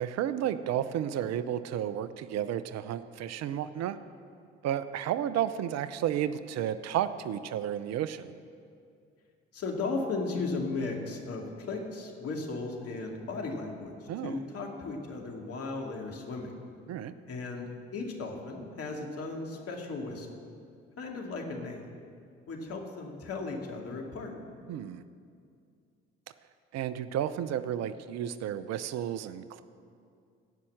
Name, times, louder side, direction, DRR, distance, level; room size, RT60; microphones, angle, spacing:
voice 1, 0.0-4.0 4.6-8.3 14.1-14.4 16.9-17.1 24.7-25.0 26.7-29.6, right 10 dB, 60° right, 13 dB, 0.6 m, -32 dB
voice 2, 9.5-13.9 14.2-16.5 17.3-20.3 21.0-21.9 22.5-24.3, left 3 dB, 55° left, 1 dB, 2.4 m, -36 dB
17.0 x 5.7 x 7.7 m, 2.3 s
hypercardioid pair, 50°, 30 cm